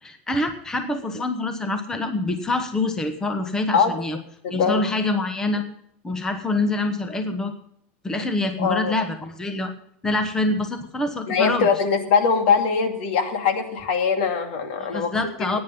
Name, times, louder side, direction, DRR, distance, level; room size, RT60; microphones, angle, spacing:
voice 1, 0.0-4.2 4.5-5.6 6.0-7.5 8.0-9.7 10.0-11.7 14.8-15.6, left 2 dB, 10° left, 7 dB, 1.1 m, -25 dB
voice 2, 4.4-4.8 8.6-8.9 11.3-15.1, left 6 dB, 65° left, 6 dB, 2.6 m, -21 dB
17.0 x 9.8 x 5.3 m, 0.70 s
supercardioid pair, 160°, 6 cm